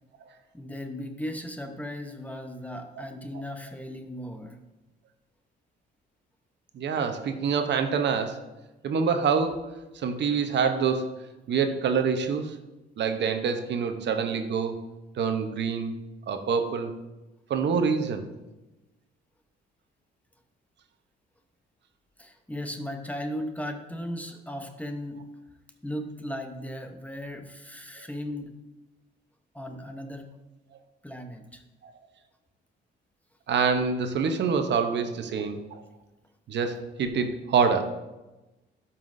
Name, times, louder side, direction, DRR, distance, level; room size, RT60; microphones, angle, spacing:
voice 1, 0.5-4.6 22.2-25.3 25.8-28.5 29.5-30.4 31.0-31.6, equal, 5° left, 5 dB, 0.9 m, -36 dB
voice 2, 6.7-8.4 8.8-11.1 11.5-12.6 13.0-14.8 15.2-16.0 16.3-16.9 17.5-18.2 28.0-28.1 31.8-31.9 33.5-35.8 36.5-37.8, right 6 dB, 60° right, 7 dB, 0.9 m, -26 dB
12.5 x 5.7 x 2.6 m, 1.1 s
cardioid pair, 90°, 20 cm